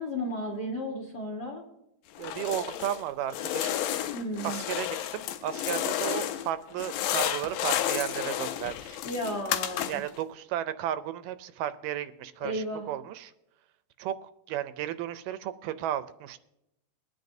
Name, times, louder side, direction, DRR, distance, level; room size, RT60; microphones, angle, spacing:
voice 1, 0.0-1.6 4.1-4.6 9.0-10.0 12.4-12.8, equal, 70° left, 0 dB, 0.9 m, -33 dB
sound 1, 2.2-3.0 3.3-6.5 6.8-10.2, left 12 dB, 85° left, 2.3 m, -31 dB
voice 2, 2.2-3.8 4.4-9.0 9.9-13.3 14.0-16.4, right 11 dB, 80° right, 12 dB, 2.1 m, -34 dB
22.0 x 9.3 x 2.7 m, 0.87 s
omnidirectional pair, 4.0 m